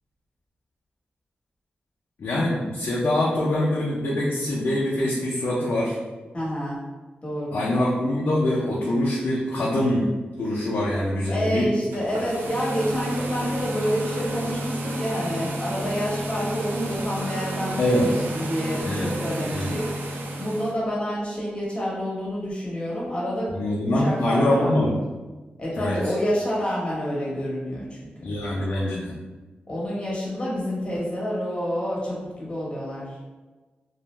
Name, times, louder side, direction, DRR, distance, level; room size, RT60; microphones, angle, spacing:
voice 1, 2.2-6.0 7.5-10.1 10.4-11.7 17.8-18.2 18.8-19.1 19.5-19.7 23.5-24.9 25.7-26.2 28.2-29.2, left 1 dB, 75° left, -6 dB, 0.4 m, -24 dB
voice 2, 6.3-6.8 7.2-7.7 11.3-23.5 23.9-24.8 25.6-28.4 29.7-33.2, equal, 30° left, -6 dB, 1.0 m, -28 dB
sound 1, 11.8-20.7, right 1 dB, 80° right, 0.3 m, -31 dB
2.4 x 2.1 x 3.0 m, 1.3 s
cardioid pair, 70°, 4 cm